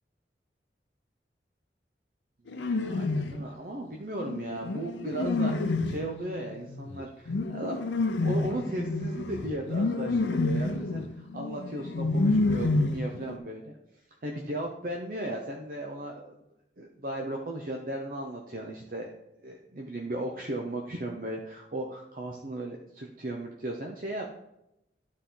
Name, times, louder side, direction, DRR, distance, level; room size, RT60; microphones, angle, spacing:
sound 1, 2.5-3.4 4.2-13.4, left 2 dB, 90° left, 0.6 m, -29 dB
voice 1, 2.5-13.8 14.2-16.4 16.8-19.1 19.4-24.3, right 1 dB, 50° right, 1 dB, 0.7 m, -36 dB
11.5 x 4.2 x 3.8 m, 0.86 s
head